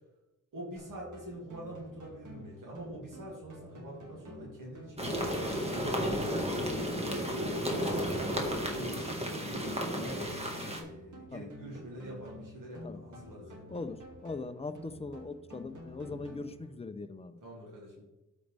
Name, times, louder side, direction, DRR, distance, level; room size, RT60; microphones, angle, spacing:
voice 1, 0.5-6.0 6.7-8.2 8.5-13.7 16.0-16.3 17.4-18.0, right 1 dB, 85° right, -5 dB, 2.6 m, -45 dB
sound 1, 0.8-16.8, left 1 dB, 65° right, 2.3 m, -50 dB
sound 2, 5.0-10.8, equal, 20° right, 1.6 m, -33 dB
voice 2, 13.7-17.4, left 3 dB, 20° left, 10 dB, 0.5 m, -41 dB
13.0 x 5.2 x 3.4 m, 1.0 s
wide cardioid pair, 150°, 32 cm